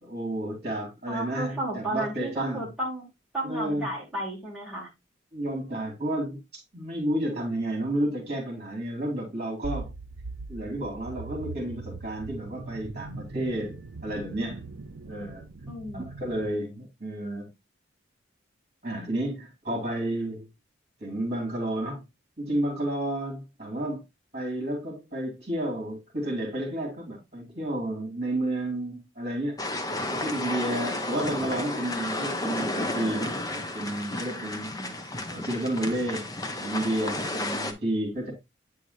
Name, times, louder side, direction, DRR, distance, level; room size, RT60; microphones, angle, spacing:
voice 1, 0.0-2.7 3.4-3.9 5.3-9.9 10.5-13.8 14.0-14.6 15.1-15.5 15.9-17.5 18.8-20.5 21.0-22.0 22.4-24.0 24.3-29.7 30.1-34.9 35.3-36.3 36.6-38.3, right 1 dB, 35° right, 2.7 m, -31 dB
voice 2, 1.1-3.0 3.3-4.9 15.7-16.2 34.1-34.9, right 1 dB, 5° right, 2.5 m, -34 dB
sound 1, 9.6-16.5, right 3 dB, 85° right, 0.6 m, -40 dB
sound 2, 29.6-37.7, left 2 dB, 20° left, 0.6 m, -32 dB
8.7 x 4.7 x 2.6 m
head